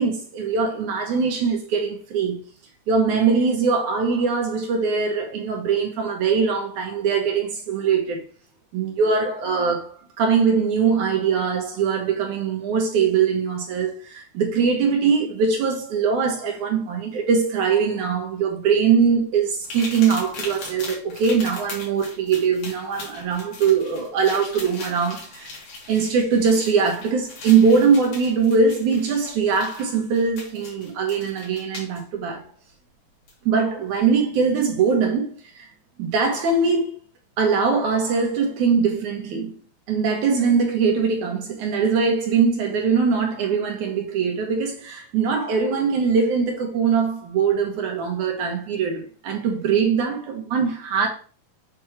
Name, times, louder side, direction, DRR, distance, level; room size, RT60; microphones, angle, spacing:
voice 1, 0.0-2.4 2.9-8.2 8.7-25.5 25.9-32.4 33.5-35.7 36.0-36.9 37.4-39.6 39.9-51.1, right 5 dB, 65° right, 2.4 m, -22 dB
sound 1, 19.6-32.0 33.3-33.4 33.9-34.1, left 3 dB, 70° left, 3.5 m, -39 dB
7.7 x 3.3 x 4.4 m
omnidirectional pair, 4.1 m